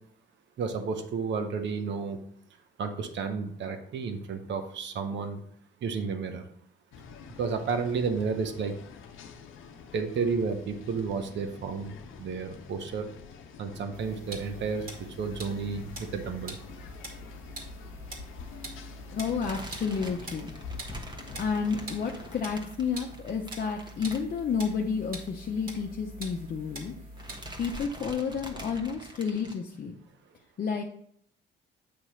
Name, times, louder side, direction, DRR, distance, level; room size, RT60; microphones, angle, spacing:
voice 1, 0.6-2.2 2.8-5.4 5.8-6.4 7.4-8.7 9.9-11.9 12.2-13.0 13.6-14.8 15.2-16.6, right 5 dB, 65° right, 7 dB, 0.9 m, -31 dB
sound 1, 6.9-22.4, left 6 dB, 90° left, 0.8 m, -47 dB
sound 2, 13.9-27.8, right 1 dB, 45° right, 2.0 m, -44 dB
voice 2, 19.1-20.5 21.4-26.9 27.6-29.9 30.6-30.8, left 6 dB, 45° left, 0 dB, 0.7 m, -31 dB
sound 3, 19.2-24.8 25.1-25.3 25.6-25.7 26.6-26.9 27.2-29.5, equal, 25° right, 1.2 m, -44 dB
8.5 x 3.0 x 5.7 m, 0.67 s
cardioid pair, 90°, 20 cm